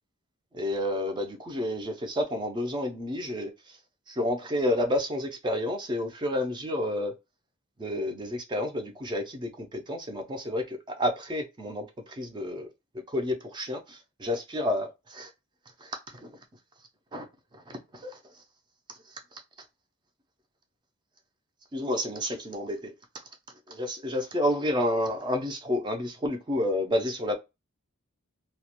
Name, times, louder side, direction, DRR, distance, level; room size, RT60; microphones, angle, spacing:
voice 1, 0.5-3.8 4.1-7.1 7.8-12.7 13.1-15.3 15.8-16.3 17.1-17.3 17.7-18.2 18.9-19.4 21.7-22.9 23.7-27.3, left 1 dB, 20° right, 0.4 m, -30 dB
2.3 x 2.1 x 2.8 m
head